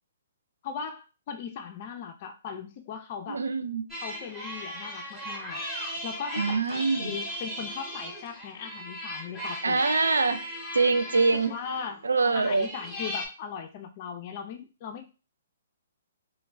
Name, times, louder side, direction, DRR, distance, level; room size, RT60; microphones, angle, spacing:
voice 1, 0.6-3.4 4.0-5.6 6.0-9.9 11.3-12.0 12.3-15.1, left 6 dB, 40° left, 5 dB, 0.4 m, -38 dB
voice 2, 3.3-3.8 6.4-7.2 9.6-10.4 10.7-11.5 12.0-12.7, right 4 dB, 85° right, 8 dB, 0.3 m, -24 dB
sound 1, 3.9-13.3, equal, 5° right, 0.8 m, -37 dB
3.0 x 2.2 x 2.2 m, 0.33 s
hypercardioid pair, 135°, 0 cm